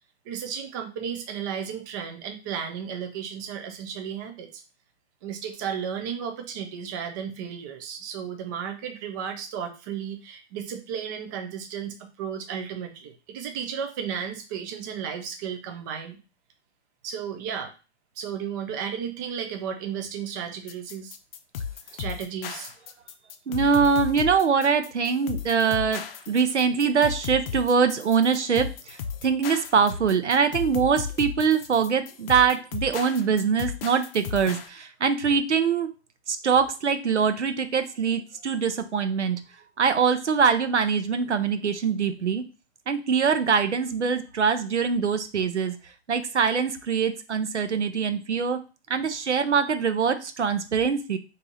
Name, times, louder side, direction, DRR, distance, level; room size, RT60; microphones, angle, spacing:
voice 1, 0.3-4.6 5.2-16.2 17.0-17.7 18.2-21.2 21.9-22.7, right 7 dB, 20° right, 5 dB, 0.4 m, -34 dB
sound 1, 20.7-34.7, left 7 dB, 55° left, 0.6 m, -35 dB
voice 2, 23.5-35.9 36.3-39.4 39.8-42.4 42.9-45.7 46.1-48.6 48.9-51.2, right 6 dB, 85° right, 9 dB, 0.7 m, -23 dB
3.3 x 2.7 x 3.9 m, 0.32 s
figure-of-eight pair, 120°, 34 cm